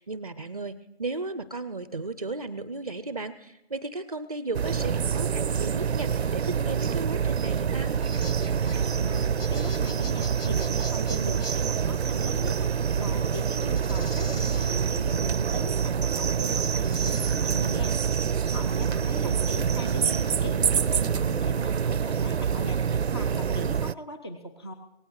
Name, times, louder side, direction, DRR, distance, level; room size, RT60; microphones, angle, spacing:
voice 1, 0.0-7.9 18.7-19.5 19.8-20.3, right 3 dB, 40° right, 13 dB, 0.5 m, -35 dB
sound 1, 4.5-23.9, right 7 dB, 90° right, 0.5 m, -26 dB
sound 2, 7.8-22.5, left 3 dB, 70° left, 1.3 m, -47 dB
voice 2, 8.6-24.7, equal, 25° left, 5 dB, 0.7 m, -39 dB
23.0 x 17.5 x 3.1 m, 0.91 s
figure-of-eight pair, 160°, 31 cm